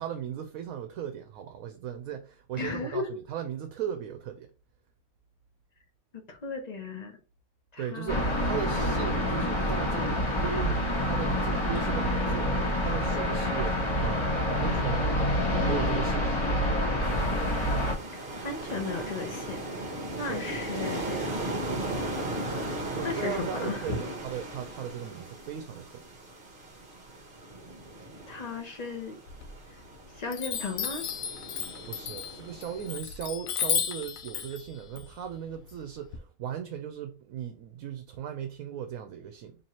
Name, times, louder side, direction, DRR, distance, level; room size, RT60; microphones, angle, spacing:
voice 1, 0.0-4.5 7.8-15.2 15.5-16.4 20.3-20.4 22.9-26.0 31.9-39.6, right 9 dB, 75° right, 1.0 m, -37 dB
voice 2, 2.6-3.2 6.3-7.2 7.7-8.5 18.1-19.6 20.1-21.3 23.0-24.1 28.3-29.2 30.1-31.1, left 3 dB, 50° left, 0.5 m, -35 dB
sound 1, 8.1-17.9, left 1 dB, 20° left, 1.2 m, -27 dB
sound 2, 17.0-33.0, right 1 dB, 40° right, 1.1 m, -37 dB
Chime, 29.3-29.9 30.3-36.2, left 9 dB, 75° left, 1.0 m, -34 dB
4.5 x 3.0 x 2.8 m
omnidirectional pair, 1.5 m